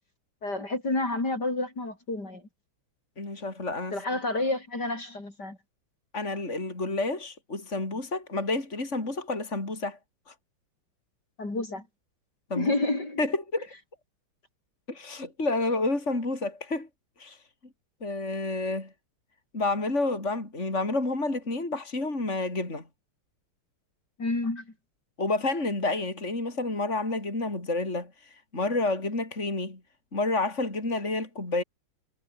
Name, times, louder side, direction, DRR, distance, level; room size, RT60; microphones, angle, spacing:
voice 1, 0.4-2.4 3.9-5.6 11.4-11.9 12.5-13.2 24.2-24.7, left 2 dB, 50° left, 6.5 m, -29 dB
voice 2, 3.2-4.0 6.1-10.0 10.3-10.4 12.5-12.7 13.2-13.7 14.9-16.9 17.2-17.4 18.0-18.9 19.5-22.8 25.2-29.8 30.1-31.6, left 2 dB, 30° left, 5.6 m, -29 dB
omnidirectional pair, 2.3 m